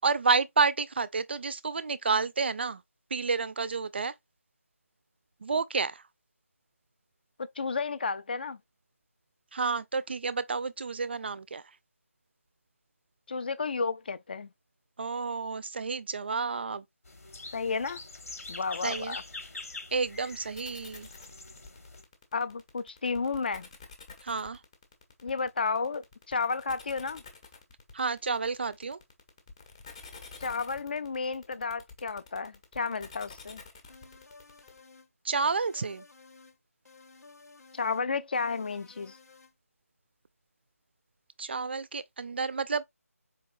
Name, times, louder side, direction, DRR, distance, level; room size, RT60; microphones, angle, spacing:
voice 1, 0.0-2.8 3.1-4.1 5.4-6.0 9.5-11.6 15.0-16.8 18.8-19.2 19.9-21.1 24.2-24.6 27.9-29.0 35.2-36.0 41.4-42.8, right 4 dB, 40° right, 0.3 m, -30 dB
voice 2, 7.4-8.6 13.3-14.5 17.5-18.0 18.5-19.2 22.3-23.7 25.2-27.2 30.4-33.6 37.7-39.2, left 4 dB, 35° left, 0.4 m, -32 dB
sound 1, 17.1-22.0, left 3 dB, 70° left, 1.1 m, -44 dB
sound 2, 20.5-34.8, left 5 dB, 20° left, 0.7 m, -49 dB
sound 3, 33.9-35.1 35.4-36.6 36.9-38.0 38.3-39.5, left 4 dB, 85° left, 0.8 m, -55 dB
4.4 x 3.0 x 2.5 m
figure-of-eight pair, 165°, 8 cm